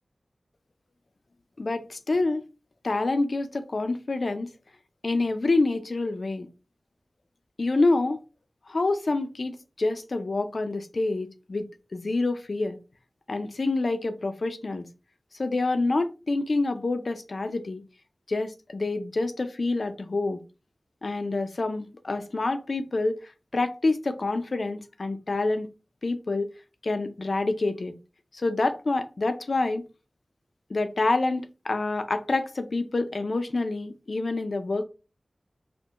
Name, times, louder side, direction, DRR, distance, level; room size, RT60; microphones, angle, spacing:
voice 1, 1.6-2.5 2.8-4.5 5.0-6.5 7.6-8.2 8.7-12.8 13.3-14.9 15.3-17.8 18.3-20.4 21.0-25.7 26.0-26.5 26.8-27.9 28.3-29.8 30.7-34.8, left 2 dB, 70° left, 0.4 m, -27 dB
4.3 x 2.1 x 2.4 m
cardioid pair, 40°, 0 cm